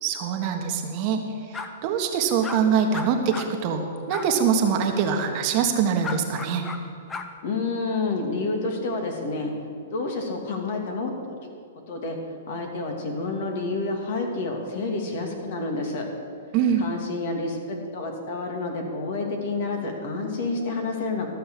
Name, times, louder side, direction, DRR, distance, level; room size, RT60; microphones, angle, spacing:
voice 1, 0.0-1.2 1.8-6.7 16.5-16.8, right 7 dB, 40° right, 4 dB, 1.4 m, -23 dB
sound 1, 1.5-1.7 2.4-2.6 2.9-3.5 4.1-4.3 6.0-6.8 7.1-7.3, left 4 dB, 15° left, 0.8 m, -34 dB
voice 2, 7.4-9.5 9.9-11.3 11.9-12.2 12.5-16.1 16.8-21.3, left 3 dB, 60° left, 2 dB, 2.4 m, -29 dB
13.5 x 6.6 x 7.6 m, 2.4 s
hypercardioid pair, 140°, 0 cm